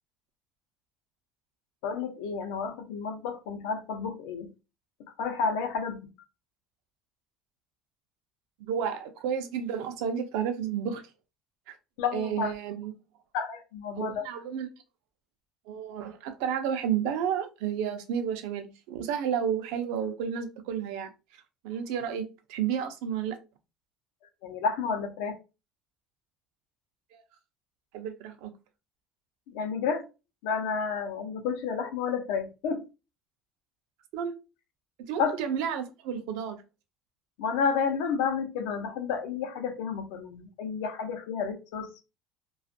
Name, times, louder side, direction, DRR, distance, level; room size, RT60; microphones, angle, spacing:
voice 1, 1.8-4.5 5.2-6.1 12.0-12.5 13.3-14.2 24.4-25.3 29.5-30.1 30.4-32.8 35.2-35.4 37.4-42.0, left 5 dB, 90° left, 0.6 m, -31 dB
voice 2, 8.6-11.0 11.7-11.8 12.1-12.9 14.0-14.7 15.7-21.1 21.6-23.4 27.1-27.2 27.9-28.5 34.1-34.3 35.1-36.6, right 8 dB, 80° right, 0.5 m, -31 dB
2.5 x 2.3 x 2.6 m
cardioid pair, 170°, 0 cm